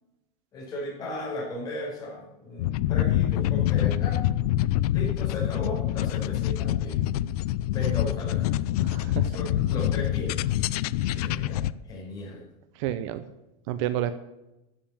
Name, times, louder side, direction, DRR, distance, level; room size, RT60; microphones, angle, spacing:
voice 1, 0.5-4.2 4.9-7.0 7.7-8.6 9.2-10.4 11.1-12.4, left 1 dB, 20° left, -4 dB, 5.1 m, -36 dB
sound 1, 2.6-11.7, left 13 dB, 70° left, 0.5 m, -26 dB
voice 2, 8.8-9.3 11.0-11.3 12.8-13.2 13.7-14.2, right 11 dB, 50° right, 13 dB, 0.7 m, -30 dB
13.0 x 7.5 x 8.8 m, 0.95 s
supercardioid pair, 175°, 20 cm